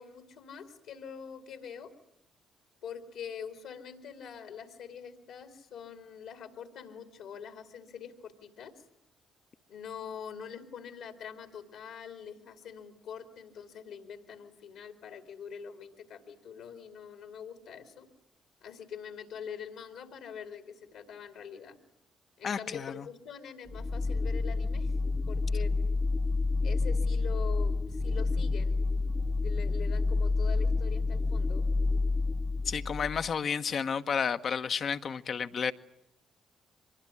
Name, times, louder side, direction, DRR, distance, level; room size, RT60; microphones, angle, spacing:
voice 1, 0.0-1.9 2.8-8.7 9.7-18.1 18.6-21.8 22.4-24.9 25.3-25.7 26.6-28.8 29.4-31.7, left 7 dB, 75° left, 2.7 m, -44 dB
voice 2, 22.4-23.0 32.6-35.7, left 6 dB, 55° left, 1.2 m, -31 dB
sound 1, 23.7-33.3, left 3 dB, 25° left, 1.0 m, -29 dB
24.0 x 21.5 x 9.9 m
hypercardioid pair, 50°, 0 cm